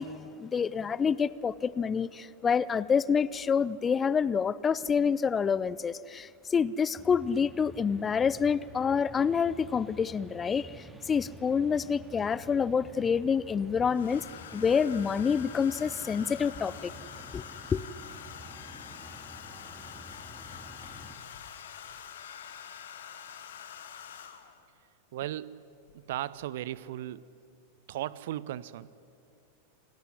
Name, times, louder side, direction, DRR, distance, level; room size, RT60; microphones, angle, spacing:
voice 1, 0.0-14.2 14.5-16.9 17.3-17.4 17.7-17.8, left 6 dB, 20° left, 0.6 m, -27 dB
sound 1, 7.0-21.2, equal, 10° right, 2.4 m, -49 dB
Domestic sounds home sounds, 13.9-24.7 25.9-26.1 26.4-26.8, left 8 dB, 60° left, 1.9 m, -46 dB
voice 2, 25.1-25.6 25.9-27.3 27.9-28.9, right 13 dB, 55° right, 0.8 m, -36 dB
29.0 x 19.5 x 9.9 m
figure-of-eight pair, 90°, 0 cm